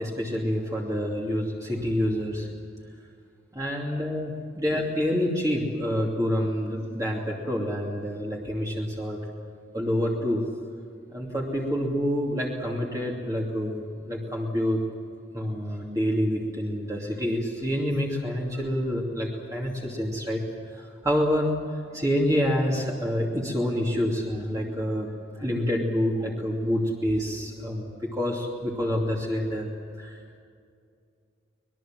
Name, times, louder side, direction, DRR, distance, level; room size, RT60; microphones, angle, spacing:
voice 1, 0.0-2.5 3.5-9.2 9.7-10.5 11.1-14.8 15.3-20.4 20.7-21.5 21.8-25.1 25.4-29.7 30.0-30.4, equal, 15° right, -3 dB, 2.7 m, -27 dB
24.5 x 20.5 x 7.6 m, 2.3 s
head